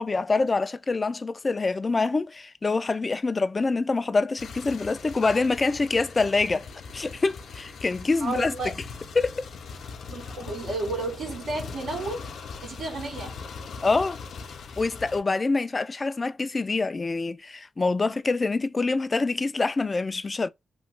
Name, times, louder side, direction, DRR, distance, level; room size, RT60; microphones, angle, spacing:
voice 1, 0.0-6.7 6.9-8.5 9.2-9.4 13.8-14.2 14.8-20.5, left 3 dB, 35° left, 0.3 m, -25 dB
sound 1, 4.4-15.2, left 5 dB, 75° left, 0.6 m, -40 dB
voice 2, 8.2-8.7 10.1-12.3 12.6-13.4, right 2 dB, 85° right, 1.7 m, -32 dB
3.0 x 2.2 x 3.2 m
cardioid pair, 75°, 0 cm